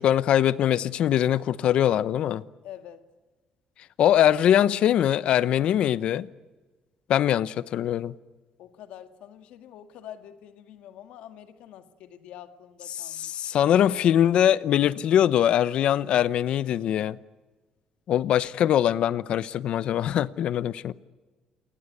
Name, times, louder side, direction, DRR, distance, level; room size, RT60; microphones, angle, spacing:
voice 1, 0.0-2.4 4.0-6.3 7.1-8.1 13.3-17.2 18.1-20.9, left 10 dB, 60° left, 0.9 m, -22 dB
voice 2, 2.6-3.1 8.6-13.4, left 10 dB, 80° left, 1.9 m, -46 dB
29.0 x 18.5 x 9.5 m
cardioid pair, 145°, 2 cm